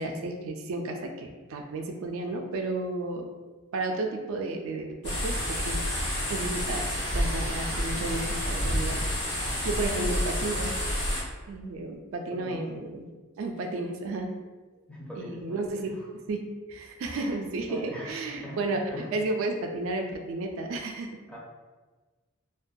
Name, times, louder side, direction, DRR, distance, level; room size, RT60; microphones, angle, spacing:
voice 1, 0.0-3.3 3.7-9.0 9.6-10.7 11.5-13.1 13.4-14.3 15.2-15.9 16.3-16.4 16.7-18.8 19.1-21.1, right 2 dB, 70° right, 3 dB, 0.3 m, -32 dB
sound 1, 5.0-11.2, equal, 75° left, 1.2 m, -29 dB
voice 2, 12.3-12.6 14.9-16.1 17.1-17.4 17.7-18.6 18.9-19.1 21.3-21.4, equal, 5° left, -5 dB, 0.4 m, -42 dB
2.2 x 2.2 x 2.6 m, 1.3 s
head